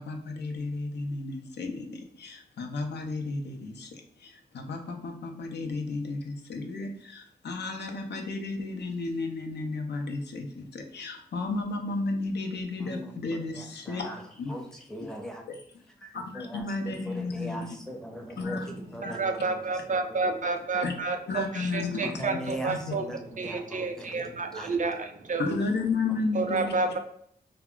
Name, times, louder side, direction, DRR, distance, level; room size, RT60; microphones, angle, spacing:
voice 1, 0.0-14.1 14.4-14.5 15.5-15.6 16.1-17.8 18.4-18.7 19.0-19.2 20.8-20.9 21.3-22.8 25.4-26.7, left 3 dB, 80° left, 3 dB, 0.5 m, -33 dB
voice 2, 12.8-15.4 16.0-19.6 20.1-20.2 20.7-20.8 22.0-24.8 26.1-26.2, equal, 5° left, 2 dB, 0.6 m, -40 dB
voice 3, 19.0-23.1 23.4-25.6 26.3-27.0, right 3 dB, 50° right, 5 dB, 0.4 m, -30 dB
2.3 x 2.2 x 3.6 m, 0.64 s
wide cardioid pair, 80°, 17 cm